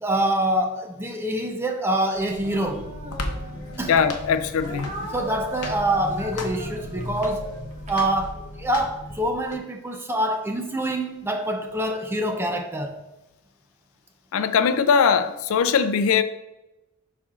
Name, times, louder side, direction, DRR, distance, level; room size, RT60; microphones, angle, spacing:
voice 1, 0.0-2.9 3.8-4.0 5.1-7.5 7.9-13.0, right 1 dB, 10° right, 0.5 m, -25 dB
sound 1, 2.1-9.6, left 2 dB, 90° left, 0.8 m, -36 dB
Speech, 2.4-3.9 4.6-8.6, right 1 dB, 30° right, 0.9 m, -39 dB
voice 2, 3.9-4.9 14.3-16.2, left 6 dB, 65° left, 0.4 m, -20 dB
10.5 x 4.2 x 2.4 m
head